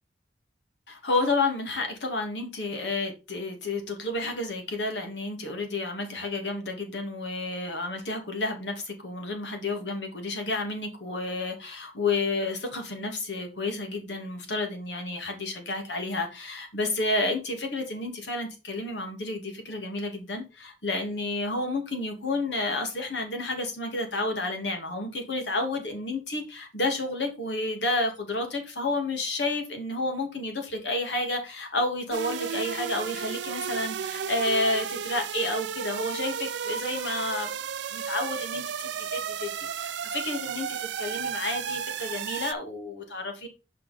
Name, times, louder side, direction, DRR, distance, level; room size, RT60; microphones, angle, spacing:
voice 1, 0.9-37.5 37.9-39.5 39.8-43.5, left 2 dB, 85° left, 2.1 m, -30 dB
sound 1, 32.1-42.5, right 7 dB, 80° right, 0.5 m, -33 dB
6.2 x 5.6 x 4.1 m
head